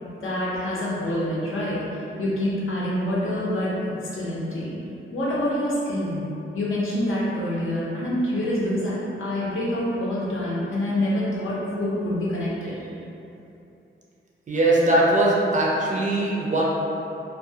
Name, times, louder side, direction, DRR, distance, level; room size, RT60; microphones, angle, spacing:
voice 1, 0.0-3.8 4.1-4.8 5.1-6.2 6.5-12.8, left 1 dB, 75° left, -7 dB, 0.7 m, -26 dB
voice 2, 14.5-16.6, right 1 dB, 35° right, -4 dB, 0.4 m, -20 dB
2.4 x 2.3 x 2.7 m, 2.8 s
wide cardioid pair, 165°, 21 cm